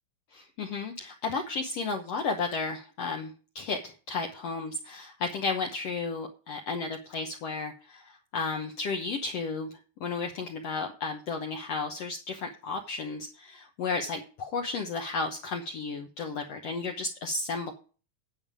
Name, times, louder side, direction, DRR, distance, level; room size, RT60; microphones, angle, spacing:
voice 1, 0.3-9.7 10.0-17.7, left 4 dB, 65° left, 3 dB, 1.7 m, -33 dB
9.1 x 8.6 x 5.0 m, 0.37 s
omnidirectional pair, 3.8 m